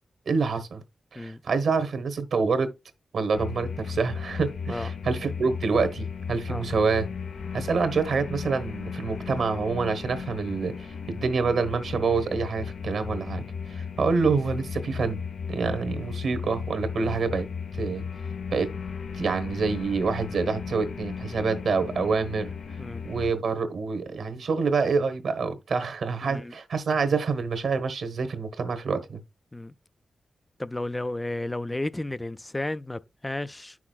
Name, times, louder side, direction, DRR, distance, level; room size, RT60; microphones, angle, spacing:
voice 1, 0.3-0.8 1.1-2.7 3.1-7.1 7.5-15.2 15.5-17.5 17.7-18.0 18.5-18.7 19.1-22.5 23.0-29.2, right 4 dB, 75° right, 1.1 m, -27 dB
sound 1, 3.3-23.3, left 6 dB, 80° left, 0.7 m, -35 dB
voice 2, 26.2-26.5 29.5-29.7 30.6-33.8, left 2 dB, 15° left, 0.3 m, -33 dB
9.6 x 6.0 x 2.3 m
cardioid pair, 90°, 0 cm